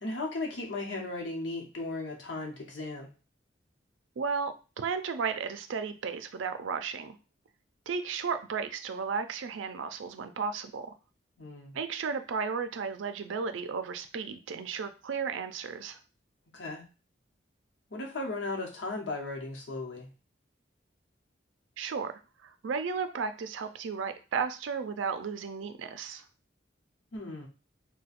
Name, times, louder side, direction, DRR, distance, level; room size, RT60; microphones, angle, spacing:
voice 1, 0.0-3.1 11.4-11.8 16.5-16.8 17.9-20.1 27.1-27.5, left 2 dB, 70° left, 0 dB, 0.9 m, -36 dB
voice 2, 4.2-7.2 7.9-10.9 11.7-16.0 21.8-26.2, right 5 dB, 90° right, 9 dB, 0.4 m, -34 dB
4.0 x 2.2 x 2.5 m, 0.32 s
head